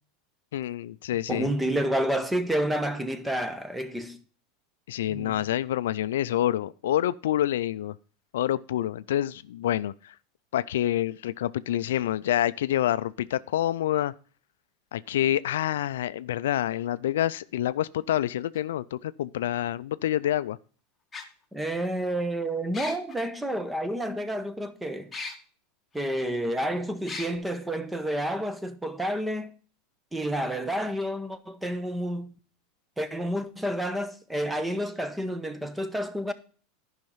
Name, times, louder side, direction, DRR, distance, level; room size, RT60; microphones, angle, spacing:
voice 1, 0.5-1.5 4.9-8.0 8.3-10.1 10.5-14.1 14.9-20.6, left 12 dB, 85° left, 0.4 m, -27 dB
voice 2, 1.3-4.2 5.1-5.4 21.5-25.1 25.9-29.5 30.1-32.3 33.0-36.3, right 1 dB, 5° right, 1.0 m, -29 dB
sound 1, 18.6-18.7 20.1-20.2 21.1-21.2 22.7-23.1 25.1-25.3 26.0-26.1 27.1-27.3, left 4 dB, 15° left, 1.6 m, -36 dB
10.5 x 5.6 x 5.5 m
supercardioid pair, 115°, 0 cm